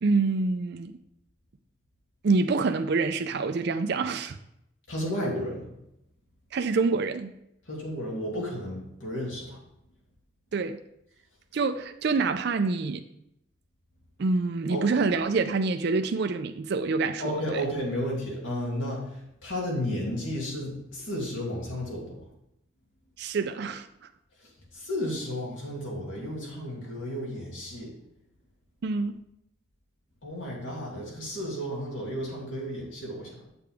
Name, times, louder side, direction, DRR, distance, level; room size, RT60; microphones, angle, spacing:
voice 1, 0.0-0.9 2.2-4.4 6.5-7.3 10.5-10.8 11.5-13.0 14.2-17.6 23.2-23.9 28.8-29.2, right 4 dB, 55° right, 0.4 m, -26 dB
voice 2, 4.9-5.6 7.7-9.6 14.7-14.9 17.2-22.2 24.7-27.9 30.2-33.5, equal, 75° left, 2.7 m, -33 dB
8.8 x 6.7 x 3.5 m
head